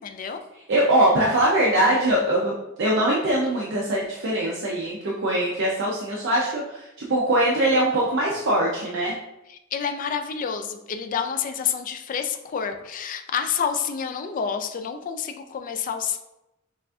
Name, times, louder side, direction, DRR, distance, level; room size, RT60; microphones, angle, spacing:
voice 1, 0.0-0.4 9.5-16.2, left 7 dB, 40° left, 7 dB, 0.3 m, -28 dB
voice 2, 0.7-2.5 2.8-9.1, right 1 dB, 60° right, -3 dB, 0.6 m, -22 dB
6.7 x 2.5 x 2.4 m, 0.92 s
head